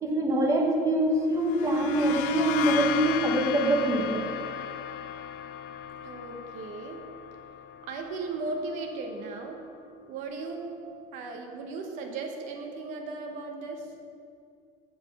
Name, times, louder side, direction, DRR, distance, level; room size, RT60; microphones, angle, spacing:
voice 1, 0.0-4.2, right 1 dB, 20° right, 0 dB, 1.1 m, -24 dB
sound 1, 1.4-9.0, left 10 dB, 60° left, 0.4 m, -35 dB
voice 2, 6.0-7.0 7.8-9.6 10.1-13.9, right 3 dB, 50° right, 3 dB, 0.9 m, -36 dB
7.9 x 4.2 x 6.7 m, 2.4 s
cardioid pair, 160°, 16 cm